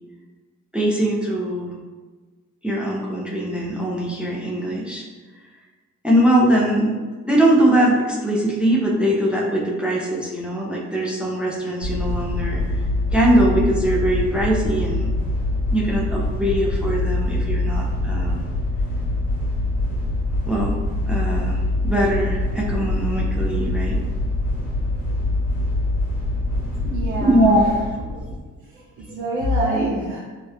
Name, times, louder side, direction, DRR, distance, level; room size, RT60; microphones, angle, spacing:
voice 1, 0.7-1.7 2.6-5.0 6.0-6.9 7.2-12.6 13.1-15.1 15.7-18.4 20.5-20.7 21.1-24.0 27.2-27.6 29.6-29.8, right 1 dB, 5° right, -3 dB, 0.4 m, -21 dB
sound 1, 11.8-28.4, left 1 dB, 80° left, 0.8 m, -24 dB
voice 2, 26.8-27.6 28.6-28.7 29.0-30.2, equal, 70° right, -5 dB, 0.5 m, -26 dB
2.8 x 2.0 x 2.3 m, 1.3 s
cardioid pair, 90°, 30 cm